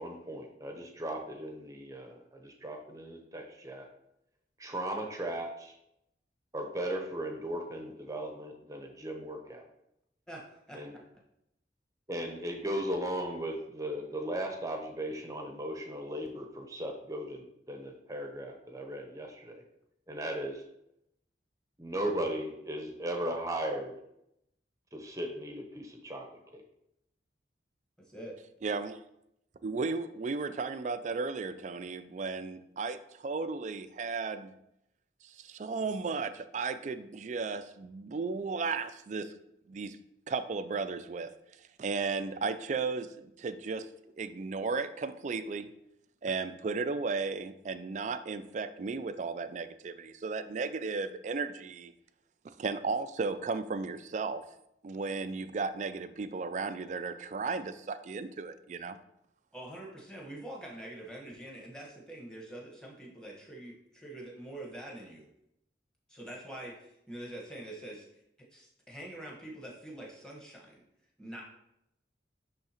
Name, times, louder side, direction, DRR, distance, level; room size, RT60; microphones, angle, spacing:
voice 1, 0.0-3.9 4.6-5.8 6.5-9.6 10.7-10.9 12.1-19.6 20.1-20.6 21.8-23.9 24.9-26.3 26.5-26.6, right 1 dB, 20° right, 3 dB, 0.8 m, -37 dB
voice 2, 28.6-29.0 29.6-34.5 35.2-39.3 39.7-40.0 40.3-43.9 44.2-45.7 46.2-51.9 52.4-54.6 54.8-59.0, right 4 dB, 40° right, 12 dB, 0.3 m, -35 dB
voice 3, 59.5-65.3 66.1-68.2 68.5-70.8 71.2-71.4, right 1 dB, 5° left, -3 dB, 1.2 m, -45 dB
10.0 x 3.5 x 2.9 m, 0.81 s
head